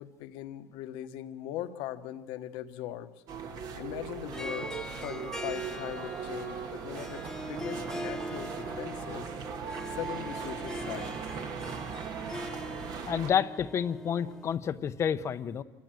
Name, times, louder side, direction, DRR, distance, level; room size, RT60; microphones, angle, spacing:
voice 1, 0.0-3.1 3.4-9.3 9.9-11.3, left 12 dB, 70° left, 9 dB, 1.3 m, -40 dB
sound 1, 3.3-13.3, right 6 dB, 50° right, 1.6 m, -39 dB
Harp, 4.2-14.5, left 1 dB, 5° left, 0.8 m, -42 dB
voice 2, 13.1-15.6, left 8 dB, 35° left, 12 dB, 0.8 m, -29 dB
28.0 x 14.5 x 7.7 m, 1.3 s
cardioid pair, 135°, 9 cm